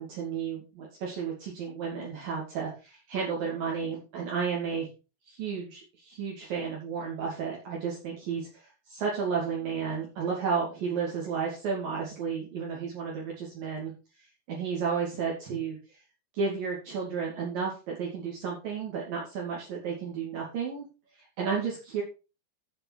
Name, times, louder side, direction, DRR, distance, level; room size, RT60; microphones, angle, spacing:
voice 1, 0.0-4.9 5.3-13.9 14.5-15.8 16.3-20.9 21.4-22.0, right 6 dB, 60° right, -3 dB, 4.1 m, -32 dB
14.5 x 5.3 x 4.7 m, 0.31 s
omnidirectional pair, 4.9 m